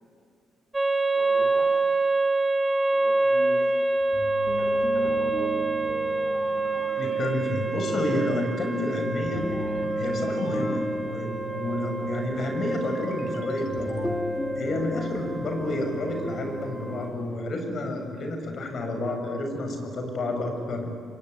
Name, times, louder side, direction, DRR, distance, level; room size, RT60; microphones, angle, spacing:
sound 1, 0.7-17.1, right 2 dB, 20° right, 3.0 m, -27 dB
voice 1, 1.1-1.8 2.9-3.9 4.5-5.6, right 3 dB, 80° right, 4 dB, 4.7 m, -41 dB
sound 2, 4.0-17.4, left 1 dB, 10° left, 2.7 m, -36 dB
sound 3, 5.9-7.4 9.4-11.1 12.9-14.1, left 7 dB, 80° left, 2.4 m, -46 dB
voice 2, 7.0-9.4 10.0-14.1 14.6-20.9, left 1 dB, 55° left, 4 dB, 5.8 m, -30 dB
25.5 x 23.5 x 9.4 m, 2.5 s
cardioid pair, 90°, 0 cm